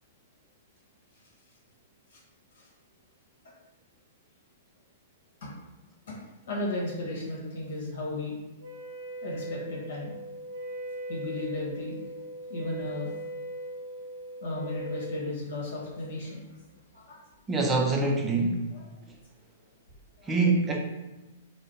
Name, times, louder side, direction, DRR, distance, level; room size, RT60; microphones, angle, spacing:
voice 1, 6.5-8.3 9.2-10.1 11.1-12.0 12.5-13.1 14.4-16.4 16.9-17.2 18.7-19.1 20.2-20.3, left 2 dB, 65° left, -4 dB, 1.3 m, -35 dB
Wind instrument woodwind instrument, 8.6-15.2, right 1 dB, 75° right, 0.7 m, -39 dB
voice 2, 17.5-18.7 20.2-20.8, right 3 dB, 15° right, 1 dB, 0.4 m, -25 dB
3.3 x 2.1 x 3.8 m, 1.1 s
hypercardioid pair, 120°, 0 cm